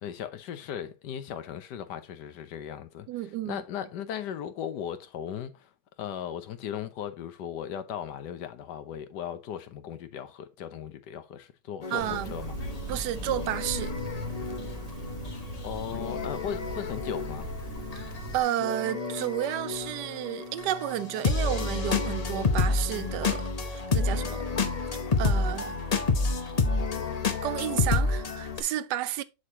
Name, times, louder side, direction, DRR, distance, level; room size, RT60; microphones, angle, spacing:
voice 1, 0.0-3.1 3.4-5.7 6.0-12.6 15.6-17.5, left 9 dB, 75° left, 1.4 m, -37 dB
voice 2, 3.1-3.6 11.9-12.3 12.9-13.9 18.0-18.1 18.3-24.4 25.2-25.8 27.4-29.2, right 12 dB, 75° right, 1.1 m, -31 dB
sound 1, 11.8-28.6, left 4 dB, 40° left, 0.5 m, -30 dB
sound 2, 12.0-18.4, right 1 dB, 40° right, 2.3 m, -38 dB
7.4 x 6.4 x 2.8 m
omnidirectional pair, 1.9 m